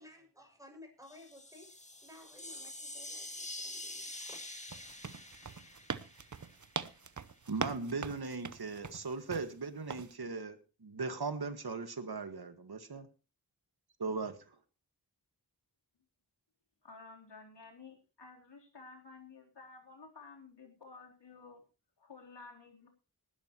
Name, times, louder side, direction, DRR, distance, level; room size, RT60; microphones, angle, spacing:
voice 1, 0.0-4.4, left 1 dB, 10° right, 3 dB, 6.6 m, -56 dB
sound 1, 1.0-6.9, left 1 dB, 15° left, 1.8 m, -46 dB
sound 2, 4.7-9.5 9.9-10.1, right 5 dB, 45° right, 0.8 m, -41 dB
voice 2, 7.5-13.1 14.0-14.4, right 4 dB, 65° right, 9 dB, 1.9 m, -38 dB
voice 3, 16.8-21.6 22.0-22.9, left 4 dB, 85° left, 1 dB, 3.9 m, -53 dB
19.5 x 11.5 x 3.1 m, 0.32 s
wide cardioid pair, 65°, 41 cm